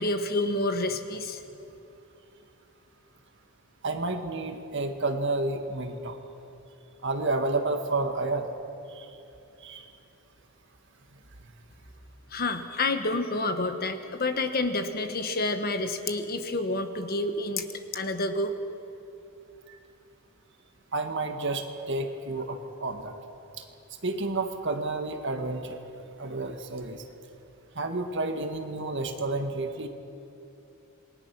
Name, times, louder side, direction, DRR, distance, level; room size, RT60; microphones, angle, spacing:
voice 1, 0.0-1.4 12.3-17.6 17.9-18.5, left 2 dB, 45° left, 8 dB, 1.3 m, -28 dB
voice 2, 3.8-6.2 7.0-8.5 8.9-9.1 9.6-9.8 20.9-23.1 24.0-25.8 26.2-27.0 27.8-29.9, right 2 dB, 55° right, 5 dB, 1.8 m, -30 dB
27.5 x 20.5 x 6.1 m, 2.9 s
head